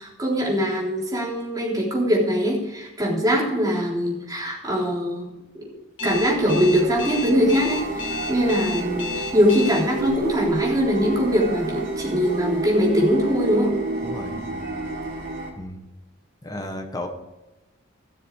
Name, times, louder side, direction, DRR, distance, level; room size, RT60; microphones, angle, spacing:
voice 1, 0.0-5.3 5.5-5.7 6.0-13.8, equal, 20° right, -4 dB, 3.6 m, -22 dB
Alarm, 6.0-9.8, left 6 dB, 70° left, 3.1 m, -32 dB
sound 1, 6.0-15.5, right 3 dB, 40° right, 2.7 m, -30 dB
voice 2, 14.0-14.6 15.6-15.9 16.4-17.1, left 1 dB, 20° left, 4 dB, 1.4 m, -34 dB
17.0 x 7.0 x 4.8 m, 1.1 s
head